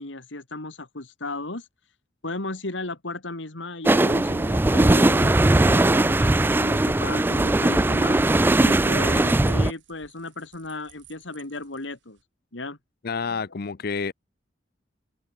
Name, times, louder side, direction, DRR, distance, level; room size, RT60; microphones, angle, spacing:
voice 1, 0.0-1.7 2.2-8.2 8.6-12.2 12.5-12.8, left 2 dB, 90° left, 2.8 m, -35 dB
sound 1, 3.8-9.7, right 2 dB, 10° right, 0.4 m, -19 dB
sound 2, 6.9-12.2, right 7 dB, 80° right, 6.2 m, -52 dB
voice 2, 13.0-14.1, left 5 dB, 55° left, 0.6 m, -29 dB
head